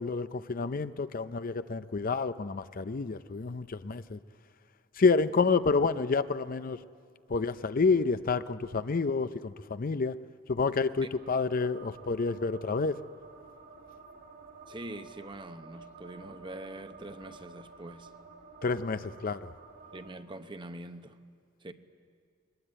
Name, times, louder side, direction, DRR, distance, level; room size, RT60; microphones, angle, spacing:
voice 1, 0.0-4.2 5.0-6.8 7.3-10.2 10.5-13.0 18.6-19.5, left 4 dB, 45° left, 0.5 m, -29 dB
sound 1, 11.2-20.1, right 4 dB, 50° right, 2.9 m, -51 dB
voice 2, 14.7-18.1 19.9-21.2 21.6-21.7, right 1 dB, 25° right, 0.9 m, -44 dB
21.0 x 20.5 x 8.9 m
head